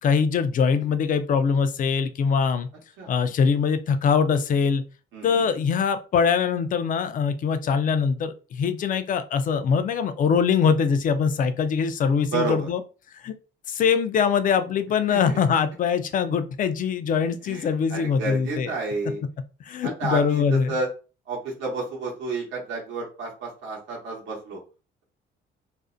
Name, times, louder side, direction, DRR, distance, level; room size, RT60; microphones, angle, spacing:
voice 1, 0.0-2.7 3.1-4.8 5.2-12.8 13.2-13.3 13.7-18.7 19.6-20.7, left 6 dB, 45° left, 11 dB, 0.4 m, -23 dB
voice 2, 5.1-5.5 12.3-12.7 15.1-15.4 17.4-19.2 19.8-20.9 21.3-24.6, right 3 dB, 70° right, -3 dB, 0.9 m, -30 dB
2.4 x 2.0 x 2.5 m, 0.34 s
cardioid pair, 95°, 20 cm